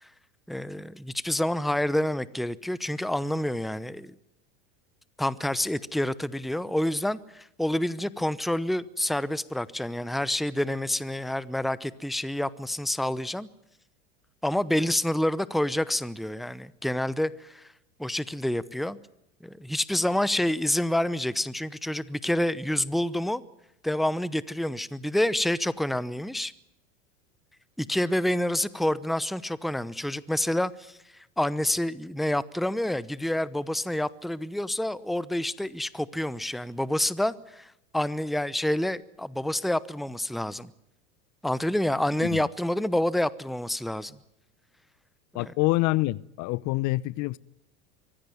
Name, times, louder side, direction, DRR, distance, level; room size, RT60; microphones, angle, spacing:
voice 1, 0.5-4.1 5.2-13.5 14.4-17.7 18.0-19.0 19.4-23.4 23.8-26.5 27.8-40.7 41.4-44.2 45.4-45.5, left 1 dB, ahead, 0.8 m, -28 dB
voice 2, 45.3-47.4, left 20 dB, 50° left, 0.8 m, -26 dB
24.0 x 16.5 x 9.5 m
hypercardioid pair, 100°, 38 cm